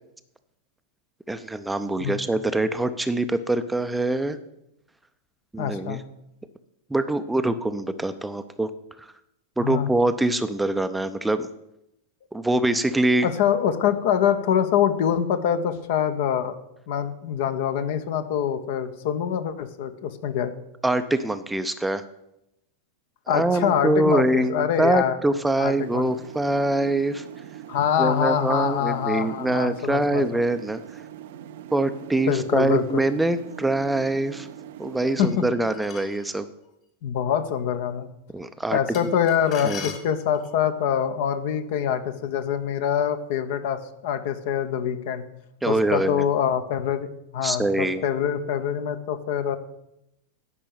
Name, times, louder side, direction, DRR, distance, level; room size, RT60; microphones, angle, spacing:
voice 1, 1.3-4.4 5.5-6.0 6.9-8.7 9.0-9.1 9.6-11.5 12.3-13.3 20.8-22.0 23.3-27.3 28.0-30.8 31.7-34.5 34.8-36.5 38.3-38.8 39.6-39.9 45.6-46.2 47.4-48.0, right 2 dB, 5° right, 10 dB, 0.6 m, -24 dB
voice 2, 5.6-6.0 9.6-9.9 13.2-16.5 16.9-20.5 23.3-25.2 25.6-26.1 27.7-30.2 32.3-33.0 35.2-35.4 37.0-38.1 38.7-45.2 45.7-47.1 47.3-49.6, left 8 dB, 50° left, 10 dB, 0.9 m, -24 dB
sound 1, 25.7-35.3, right 11 dB, 55° right, 0.6 m, -42 dB
sound 2, 35.2-36.2 38.9-40.6, left 7 dB, 35° left, 2.0 m, -40 dB
10.0 x 5.5 x 8.4 m, 0.83 s
figure-of-eight pair, 90°, 0 cm